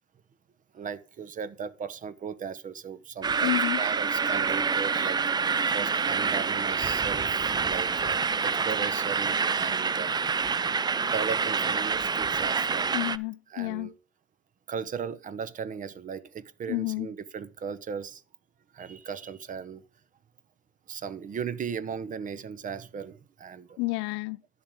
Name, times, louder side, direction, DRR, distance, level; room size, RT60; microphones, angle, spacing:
voice 1, 0.7-5.2 5.7-7.3 7.7-10.5 11.1-12.9 13.5-14.0 14.7-18.2 18.7-19.8 20.9-23.8, right 6 dB, 40° right, 0.9 m, -37 dB
sound 1, 3.2-13.2, right 5 dB, 20° right, 0.4 m, -27 dB
voice 2, 3.4-3.8 12.9-13.9 16.7-17.1 23.8-24.4, left 24 dB, 75° left, 0.4 m, -30 dB
10.5 x 7.0 x 3.6 m
hypercardioid pair, 70°, 20 cm